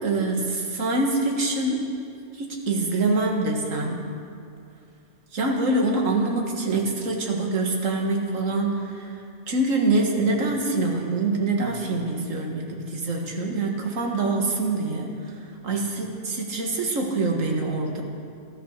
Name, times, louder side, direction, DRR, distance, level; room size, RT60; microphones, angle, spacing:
voice 1, 0.0-1.9 2.4-4.0 5.3-9.1 9.5-15.1 15.6-18.0, right 2 dB, 65° right, 0 dB, 2.1 m, -25 dB
14.5 x 12.0 x 6.6 m, 2.4 s
omnidirectional pair, 1.5 m